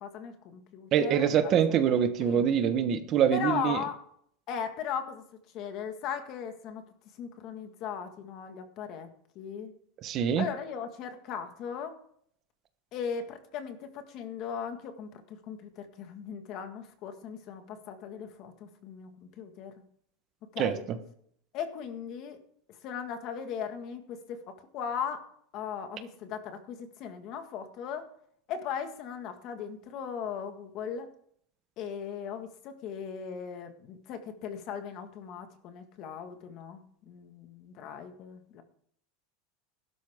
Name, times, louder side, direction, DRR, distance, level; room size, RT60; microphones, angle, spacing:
voice 1, 0.0-1.5 2.2-2.5 3.3-4.0 4.5-5.2 5.5-6.9 7.2-9.7 10.4-11.9 12.9-19.7 20.5-20.8 21.5-22.4 22.8-25.3 25.5-28.1 28.5-31.1 31.8-38.6, left 7 dB, 35° left, 7 dB, 1.8 m, -38 dB
voice 2, 0.9-3.8 10.0-10.4 20.6-20.7, right 8 dB, 30° right, 8 dB, 1.1 m, -25 dB
16.0 x 12.5 x 3.7 m, 0.64 s
supercardioid pair, 170°, 0 cm